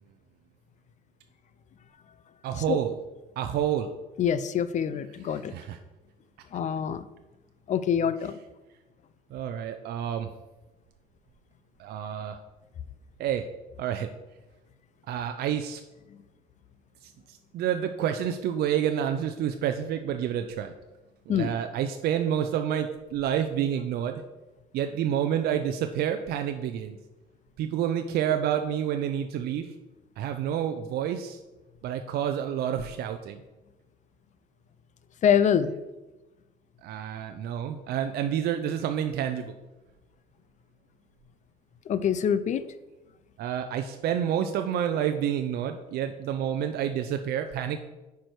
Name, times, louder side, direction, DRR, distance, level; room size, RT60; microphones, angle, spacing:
voice 1, 2.4-3.0 3.4-3.9 5.3-5.8 8.2-8.3 9.3-10.3 11.8-12.4 13.2-13.5 13.8-14.1 15.1-15.8 17.0-20.7 21.3-24.2 24.7-27.0 27.6-29.7 30.2-31.4 31.8-33.4 36.8-39.6 43.4-47.8, right 9 dB, 65° right, 7 dB, 0.5 m, -29 dB
voice 2, 4.2-5.5 6.5-7.1 7.7-8.4 21.3-21.5 35.2-35.7 41.9-42.6, left 8 dB, 45° left, 14 dB, 0.5 m, -25 dB
9.2 x 4.7 x 4.6 m, 1.1 s
cardioid pair, 110°, 17 cm